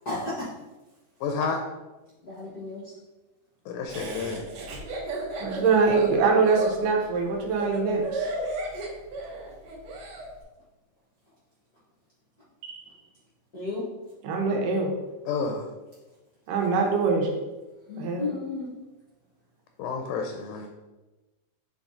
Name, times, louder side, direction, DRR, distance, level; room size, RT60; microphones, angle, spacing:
voice 1, 0.0-0.5 2.2-2.9 13.5-13.8 17.9-18.7, left 3 dB, 55° left, -7 dB, 1.0 m, -33 dB
voice 2, 1.2-1.6 3.7-4.5 15.3-15.7 19.8-20.7, left 5 dB, 80° left, 4 dB, 2.1 m, -30 dB
Laughter, 3.9-10.3, right 2 dB, 60° right, 2.2 m, -34 dB
voice 3, 5.4-8.3 12.6-12.9 14.2-15.0 16.5-17.3 18.0-18.3, right 4 dB, 85° right, 1 dB, 2.7 m, -23 dB
7.2 x 3.8 x 3.9 m, 1.1 s
omnidirectional pair, 3.7 m